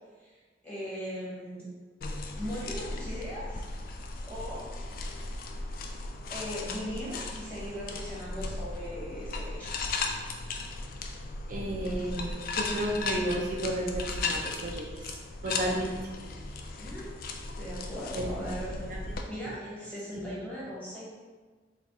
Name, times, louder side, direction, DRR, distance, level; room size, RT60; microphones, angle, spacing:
voice 1, 0.2-1.6 2.4-3.6 4.2-4.7 6.3-9.9 15.9-16.3 16.8-17.1 17.6-18.9 19.3-21.1, equal, 10° left, -8 dB, 1.1 m, -39 dB
sound 1, 2.0-19.2, left 3 dB, 50° left, 0.3 m, -36 dB
voice 2, 11.5-14.9 15.4-15.9 18.1-18.2 18.9-19.0 19.4-19.5 20.2-20.3, right 1 dB, 50° right, -2 dB, 0.4 m, -32 dB
4.1 x 2.3 x 3.5 m, 1.4 s
head